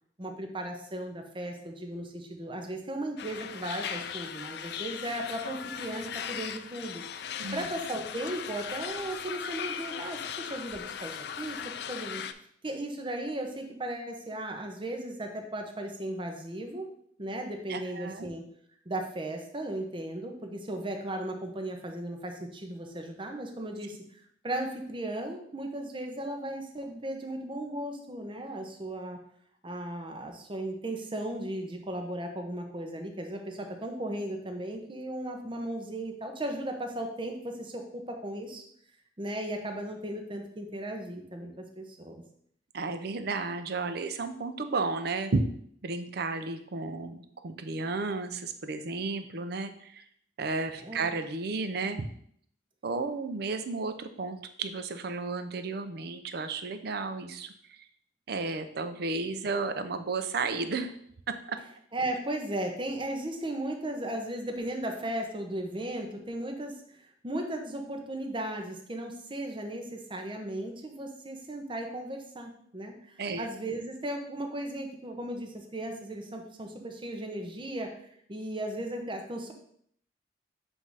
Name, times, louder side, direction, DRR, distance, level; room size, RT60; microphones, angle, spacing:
voice 1, 0.2-7.0 7.5-12.2 12.6-16.9 17.2-18.4 18.9-29.2 29.6-38.6 39.2-42.2 50.8-51.1 61.9-78.0 78.3-79.5, right 1 dB, 25° right, 3 dB, 0.8 m, -36 dB
sound 1, 3.2-12.3, left 8 dB, 60° left, 0.4 m, -38 dB
voice 2, 17.7-18.3 42.7-45.4 45.8-50.0 50.4-52.1 52.8-57.5 58.3-60.9 61.5-61.6 73.2-73.5, right 3 dB, 60° right, 9 dB, 0.5 m, -33 dB
7.5 x 2.7 x 4.7 m, 0.66 s
head